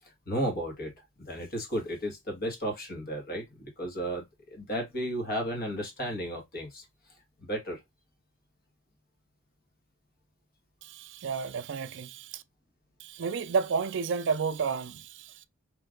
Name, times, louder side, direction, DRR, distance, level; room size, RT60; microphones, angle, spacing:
voice 1, 0.0-0.9 1.2-6.8 7.4-7.8, equal, 45° left, 1.7 m, -34 dB
voice 2, 10.8-12.4 13.0-15.5, right 5 dB, 60° right, 0.4 m, -31 dB
3.2 x 3.0 x 3.7 m
head